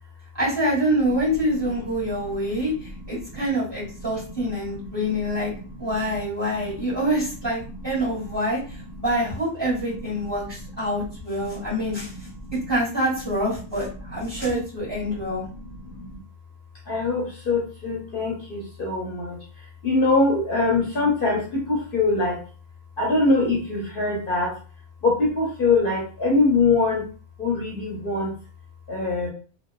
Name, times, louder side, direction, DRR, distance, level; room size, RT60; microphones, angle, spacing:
voice 1, 0.4-2.7 3.1-5.5 5.8-8.6 9.0-12.1 12.7-15.5, equal, 20° right, -7 dB, 1.4 m, -26 dB
voice 2, 2.2-2.7 2.9-3.4 4.4-4.5 4.8-6.2 6.5-6.9 7.7-7.8 8.2-8.3 8.7-8.8 10.1-10.2 11.4-11.7 12.4-12.6 14.1-14.2 15.1-16.2 16.9-19.4 19.8-22.4 23.0-24.5 25.0-27.1 27.4-28.3 28.9-29.3, left 3 dB, 50° left, -3 dB, 0.9 m, -24 dB
2.9 x 2.2 x 2.3 m, 0.39 s
omnidirectional pair, 1.2 m